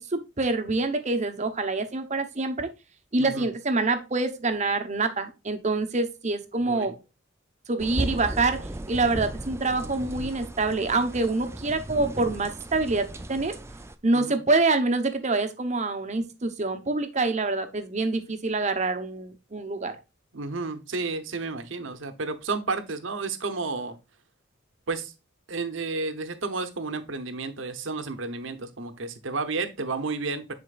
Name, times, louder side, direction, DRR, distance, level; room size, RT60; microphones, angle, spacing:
voice 1, 0.0-2.7 3.1-6.9 7.7-13.5 14.0-20.0, right 3 dB, 35° right, 0.9 m, -26 dB
sound 1, 7.8-14.0, right 1 dB, 15° right, 0.4 m, -36 dB
voice 2, 20.3-24.0 24.9-25.1 25.5-30.5, right 3 dB, 70° right, 0.9 m, -31 dB
9.9 x 4.4 x 2.4 m
head